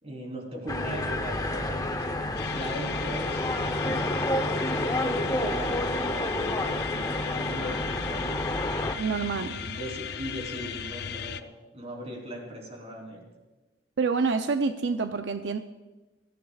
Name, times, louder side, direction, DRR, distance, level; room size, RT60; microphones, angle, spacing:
voice 1, 0.0-4.1 4.8-8.5 9.3-13.3, equal, 35° right, 0 dB, 3.6 m, -38 dB
sound 1, 0.7-8.9, left 1 dB, 20° left, 0.8 m, -29 dB
sound 2, 2.4-11.4, left 8 dB, 60° left, 0.5 m, -37 dB
voice 2, 9.0-9.6 14.0-15.6, right 4 dB, 85° right, 7 dB, 0.5 m, -27 dB
22.5 x 14.5 x 2.4 m, 1.2 s
head